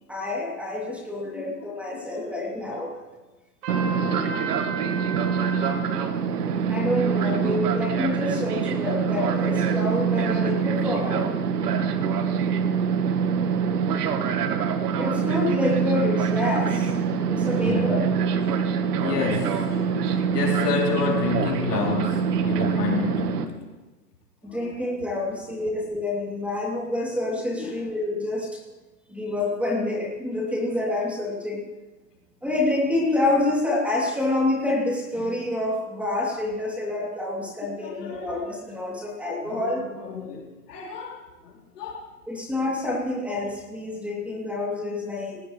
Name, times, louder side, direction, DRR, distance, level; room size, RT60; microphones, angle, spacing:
voice 1, 0.1-3.0 6.7-11.3 15.0-16.9 17.3-18.0 24.4-28.6 29.1-31.6 32.4-39.8 42.3-45.4, left 2 dB, 5° right, -3 dB, 3.0 m, -27 dB
voice 2, 1.2-2.7 3.8-5.3 7.3-7.4 17.6-18.1 18.4-23.7 24.4-24.8 27.6-27.8 29.1-29.3 37.7-38.4 39.4-42.1, left 5 dB, 80° left, -2 dB, 4.3 m, -32 dB
Trumpet, 3.6-5.9, right 4 dB, 60° right, 3.5 m, -34 dB
Fixed-wing aircraft airplane, 3.7-23.4, right 6 dB, 75° right, 1.5 m, -24 dB
18.5 x 17.5 x 3.3 m, 1.2 s
hypercardioid pair, 145°, 47 cm